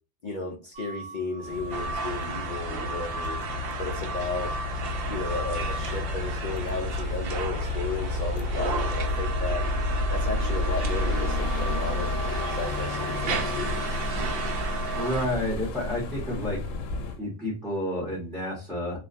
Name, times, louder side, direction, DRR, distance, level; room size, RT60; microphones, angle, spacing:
voice 1, 0.2-3.4 3.8-4.5 5.1-9.7 10.1-12.2 12.5-13.9, left 3 dB, 60° left, 2 dB, 0.5 m, -34 dB
sound 1, 0.7-12.5, right 4 dB, 45° right, 0.9 m, -50 dB
sound 2, 1.4-17.2, left 2 dB, 80° left, 0.9 m, -31 dB
sound 3, 1.7-15.3, right 4 dB, 65° right, 0.6 m, -34 dB
voice 2, 14.9-16.6 17.2-19.0, left 1 dB, ahead, -5 dB, 0.8 m, -30 dB
2.4 x 2.2 x 2.4 m, 0.34 s
omnidirectional pair, 1.3 m